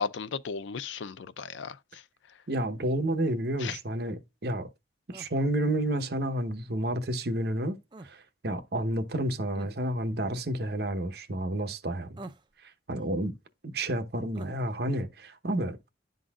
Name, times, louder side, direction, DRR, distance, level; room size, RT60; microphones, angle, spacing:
voice 1, 0.0-2.0 3.6-3.8, left 5 dB, 75° left, 0.5 m, -35 dB
voice 2, 2.5-4.7 5.1-7.8 8.0-12.2 12.9-13.3 13.6-15.8, right 1 dB, 55° right, 0.9 m, -30 dB
sound 1, 3.6-3.9 5.1-5.3 7.9-8.2 9.5-9.7 12.2-12.5 14.3-14.6, right 2 dB, 25° right, 0.4 m, -45 dB
11.0 x 3.9 x 2.3 m
head